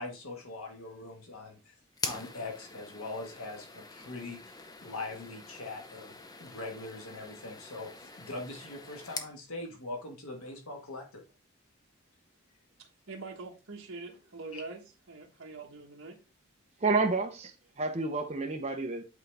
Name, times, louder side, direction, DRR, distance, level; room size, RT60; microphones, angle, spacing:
voice 1, 0.0-1.7 2.0-6.1 6.4-11.2 14.5-14.6, left 2 dB, 80° left, 1.6 m, -42 dB
sound 1, 1.9-9.4, left 4 dB, 15° left, 0.5 m, -44 dB
voice 2, 12.8-14.8 15.1-16.2, right 3 dB, 70° right, 1.2 m, -44 dB
voice 3, 16.8-19.1, right 3 dB, 30° right, 0.8 m, -30 dB
8.3 x 4.0 x 3.4 m
head